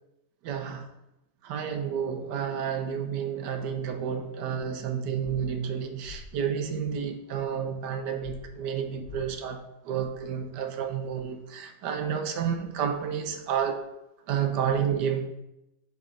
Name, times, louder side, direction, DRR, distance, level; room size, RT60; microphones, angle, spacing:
voice 1, 0.4-0.9 1.4-13.8 14.3-15.3, right 7 dB, 85° right, 6 dB, 1.4 m, -30 dB
sound 1, 5.2-5.4 6.0-6.2 8.2-8.4 9.0-9.2, left 5 dB, 80° left, 1.9 m, -42 dB
8.3 x 4.0 x 3.8 m, 0.89 s
omnidirectional pair, 1.8 m